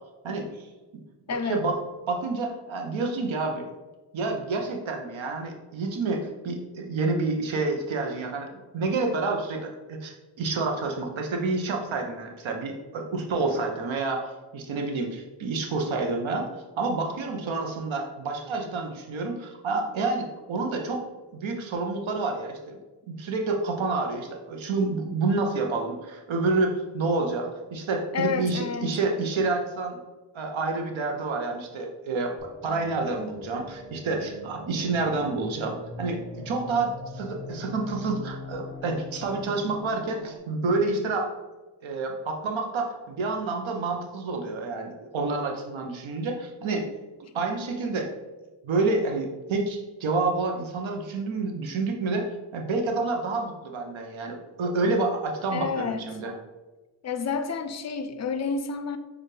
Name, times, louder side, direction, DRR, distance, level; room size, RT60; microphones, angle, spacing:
voice 1, 0.2-0.7 0.9-1.0 1.4-1.8 2.1-3.7 4.1-16.5 16.8-21.0 21.3-22.8 23.1-30.0 30.3-41.3 41.8-46.9 47.3-48.1 48.6-56.3, right 3 dB, 90° right, 3 dB, 0.8 m, -28 dB
voice 2, 1.3-1.6 28.1-28.9 55.5-56.0 57.0-59.0, left 5 dB, 40° left, 10 dB, 0.4 m, -29 dB
sound 1, 32.4-40.4, left 2 dB, 5° right, 1.0 m, -41 dB
6.5 x 2.4 x 3.2 m, 1.2 s
wide cardioid pair, 85°, 45 cm